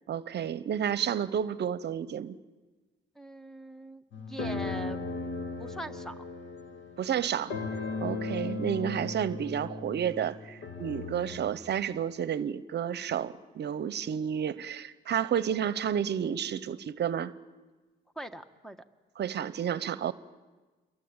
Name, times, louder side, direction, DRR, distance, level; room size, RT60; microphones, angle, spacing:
voice 1, 0.1-2.4 7.0-7.5 8.0-17.3 19.2-20.1, right 8 dB, 60° right, 16 dB, 0.9 m, -31 dB
voice 2, 3.1-5.0 5.6-6.1 8.2-8.4 18.1-18.8, equal, ahead, 11 dB, 1.7 m, -42 dB
sound 1, 4.1-11.5, left 3 dB, 65° left, 2.3 m, -37 dB
29.0 x 23.0 x 8.9 m, 1.3 s
cardioid pair, 90°, 20 cm